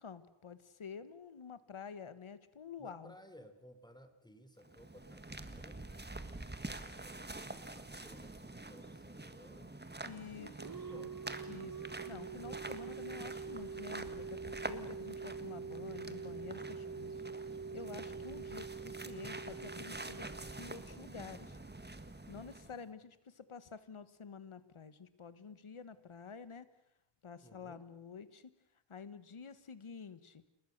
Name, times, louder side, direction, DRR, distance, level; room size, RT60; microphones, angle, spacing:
voice 1, 0.0-3.1 10.0-10.5 10.9-11.1 11.5-17.2 17.7-21.6 22.3-26.7 27.2-28.5 28.9-30.4, left 6 dB, 85° left, 13 dB, 1.6 m, -49 dB
voice 2, 2.8-5.8 7.0-9.8 10.3-11.4 27.4-27.9, equal, 10° left, 9 dB, 3.3 m, -58 dB
sound 1, 4.6-22.8, right 2 dB, 20° right, 1.7 m, -47 dB
sound 2, 10.6-21.3, right 5 dB, 45° right, 1.3 m, -45 dB
30.0 x 19.5 x 6.7 m, 0.83 s
wide cardioid pair, 65°, 48 cm